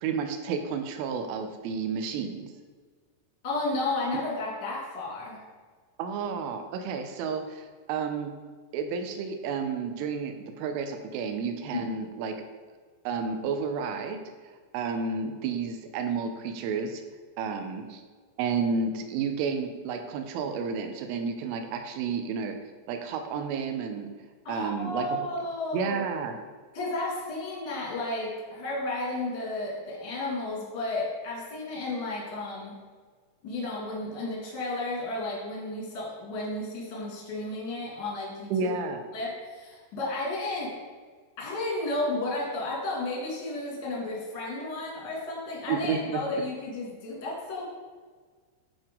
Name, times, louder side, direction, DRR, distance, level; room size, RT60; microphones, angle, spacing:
voice 1, 0.0-2.5 4.1-4.2 6.0-8.3 8.7-12.3 13.1-14.2 14.7-17.0 17.4-18.0 18.4-22.6 22.9-24.1 24.5-25.2 25.7-26.3 38.5-39.0 45.7-46.2, right 5 dB, 85° right, 5 dB, 3.0 m, -31 dB
voice 2, 3.4-5.4 11.7-11.9 24.4-26.0 26.7-32.7 33.4-38.7 39.1-40.7 41.4-47.7, left 2 dB, 60° left, -4 dB, 1.1 m, -33 dB
9.5 x 4.5 x 3.7 m, 1.5 s
omnidirectional pair, 5.9 m